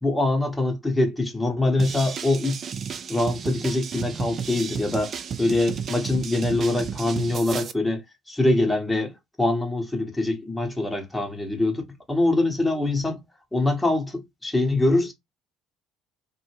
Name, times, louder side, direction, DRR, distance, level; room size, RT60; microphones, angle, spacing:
voice 1, 0.0-2.6 3.1-13.2 13.5-15.1, left 2 dB, 10° left, 0.9 m, -24 dB
sound 1, 1.8-7.7, right 7 dB, 45° right, 0.4 m, -33 dB
2.1 x 2.1 x 3.3 m
figure-of-eight pair, 55°, 0 cm